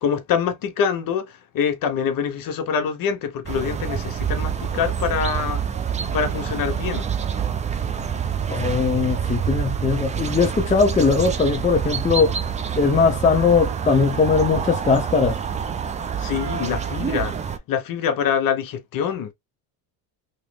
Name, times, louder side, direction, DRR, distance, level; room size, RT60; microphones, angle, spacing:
voice 1, 0.0-5.6 6.1-7.1 16.2-19.3, left 7 dB, 50° left, 1.0 m, -25 dB
sound 1, 3.5-17.6, right 7 dB, 20° right, 0.3 m, -27 dB
voice 2, 8.5-12.3 12.8-15.4, left 5 dB, 15° left, 0.6 m, -19 dB
3.0 x 2.6 x 3.3 m
cardioid pair, 115°, 42 cm